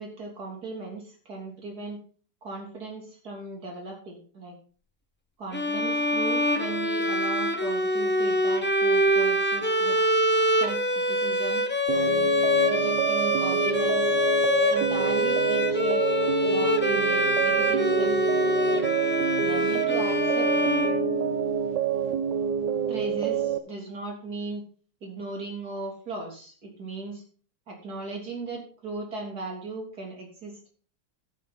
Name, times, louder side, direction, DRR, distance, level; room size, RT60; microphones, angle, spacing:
voice 1, 0.0-2.0 2.4-4.5 5.4-10.0 10.6-11.6 11.9-12.3 12.7-14.2 14.7-16.1 16.4-18.9 19.4-20.5 22.9-24.6 25.0-27.2 27.7-30.6, right 3 dB, 45° right, 0 dB, 3.7 m, -37 dB
Bowed string instrument, 5.5-21.6, left 1 dB, 15° left, 0.3 m, -25 dB
sound 1, 11.9-23.6, right 8 dB, 70° right, 1.3 m, -27 dB
13.0 x 8.3 x 4.2 m, 0.40 s
omnidirectional pair, 2.2 m